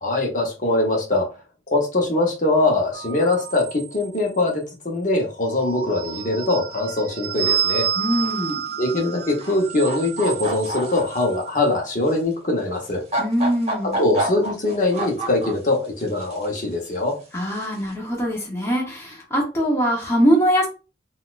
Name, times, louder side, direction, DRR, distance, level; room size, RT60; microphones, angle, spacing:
voice 1, 0.0-1.3 1.7-7.9 8.8-13.0 14.0-17.2, left 2 dB, 45° left, 0 dB, 0.9 m, -22 dB
sound 1, 2.9-4.4 5.3-11.9, right 8 dB, 55° right, 0.4 m, -30 dB
sound 2, 7.4-7.7 8.1-8.5 9.3-9.5 9.8-11.2 12.1-12.2 12.8-15.7 16.0-16.6 17.5-17.8, right 1 dB, 35° right, 0.9 m, -28 dB
voice 2, 8.0-8.6 13.2-14.0 17.3-20.7, equal, 15° left, -3 dB, 0.8 m, -22 dB
4.0 x 2.4 x 2.4 m, 0.32 s
head